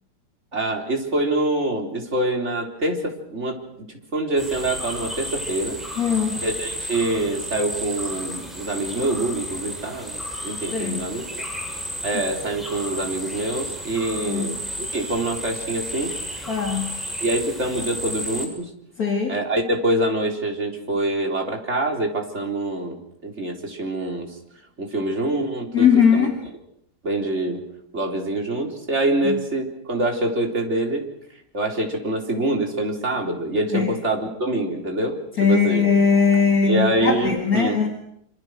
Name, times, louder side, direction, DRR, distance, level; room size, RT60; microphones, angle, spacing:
voice 1, 0.5-3.6 4.1-5.8 6.4-11.4 12.0-16.1 17.2-18.7 19.3-23.0 23.2-24.4 24.8-26.3 27.0-27.6 27.9-31.0 31.5-35.2 35.4-35.8 36.6-37.8, right 2 dB, 40° right, 2 dB, 4.2 m, -25 dB
sound 1, 4.4-18.5, equal, ahead, 6.7 m, -33 dB
voice 2, 6.0-6.4 10.7-11.0 14.3-14.5 16.5-17.1 19.0-19.4 25.7-26.4 29.2-29.4 33.7-33.9 35.4-37.9, left 6 dB, 60° left, 3 dB, 2.9 m, -20 dB
26.5 x 26.5 x 6.4 m, 0.74 s
omnidirectional pair, 1.8 m